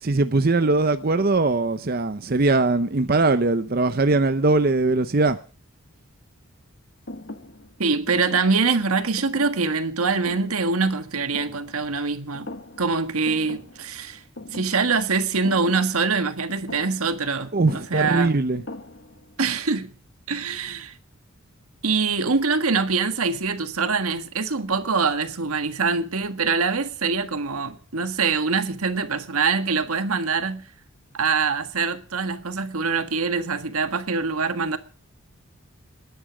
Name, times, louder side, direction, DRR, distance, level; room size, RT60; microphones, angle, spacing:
voice 1, 0.0-5.4 17.5-18.6, right 3 dB, 45° right, 0.6 m, -21 dB
Thump thud, 7.1-12.1 12.3-13.0 13.3-19.4, left 2 dB, 55° left, 1.2 m, -42 dB
voice 2, 7.8-12.5 12.8-14.2 14.5-18.3 19.4-19.9 20.3-21.0 21.8-30.7 31.1-34.8, right 4 dB, 85° right, 1.6 m, -24 dB
20.0 x 10.5 x 6.2 m
head